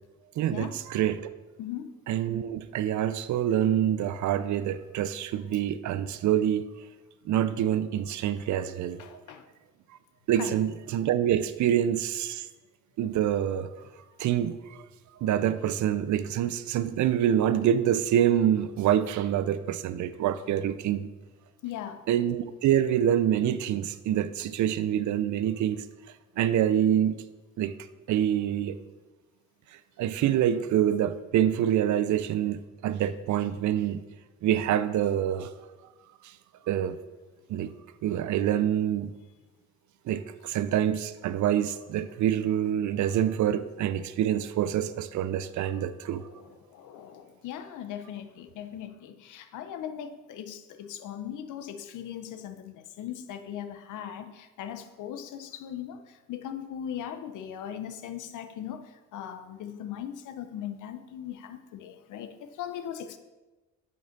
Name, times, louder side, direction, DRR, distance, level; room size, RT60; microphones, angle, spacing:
voice 1, 0.4-1.3 2.1-6.7 7.3-9.0 10.3-12.5 13.0-13.7 14.2-14.8 15.2-21.1 22.1-25.8 26.4-27.2 27.6-27.7 28.1-28.8 30.0-34.0 34.4-35.5 36.7-37.0 37.5-37.7 38.0-39.1 40.1-46.2, right 10 dB, 70° right, 13 dB, 0.6 m, -26 dB
voice 2, 1.6-2.0 9.0-9.5 10.3-10.6 13.8-13.9 21.6-22.1 46.1-63.2, left 10 dB, 80° left, 8 dB, 0.8 m, -39 dB
6.3 x 5.4 x 5.9 m, 1.2 s
cardioid pair, 90°, 30 cm